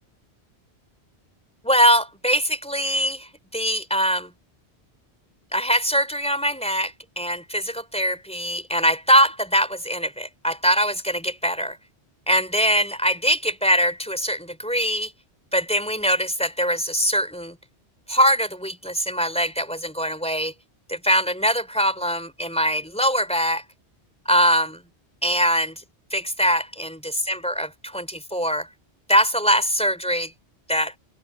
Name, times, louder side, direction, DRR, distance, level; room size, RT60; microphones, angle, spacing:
voice 1, 1.6-4.3 5.5-11.8 12.3-15.1 15.5-17.6 18.1-20.5 20.9-23.6 24.3-24.8 25.2-25.8 26.1-28.7 29.1-30.3 30.7-30.9, equal, 5° left, 3.9 m, -22 dB
omnidirectional pair, 1.1 m